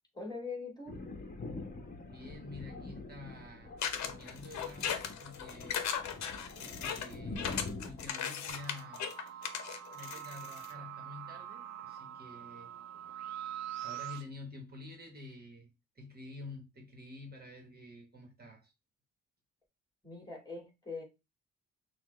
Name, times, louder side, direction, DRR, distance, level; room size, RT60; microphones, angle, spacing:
voice 1, 0.1-1.0 20.0-21.0, left 4 dB, 15° left, 2.2 m, -42 dB
Thunder, 0.9-8.1, left 3 dB, 30° left, 1.2 m, -45 dB
voice 2, 2.1-3.7 4.0-5.8 6.6-7.5 7.8-9.1 9.9-12.7 13.8-18.7, left 2 dB, 30° right, 1.4 m, -49 dB
sound 1, 3.8-10.7, left 8 dB, 65° left, 0.8 m, -37 dB
sound 2, 8.5-14.2, right 11 dB, 60° right, 0.8 m, -44 dB
5.9 x 2.5 x 3.2 m
cardioid pair, 90°, 30 cm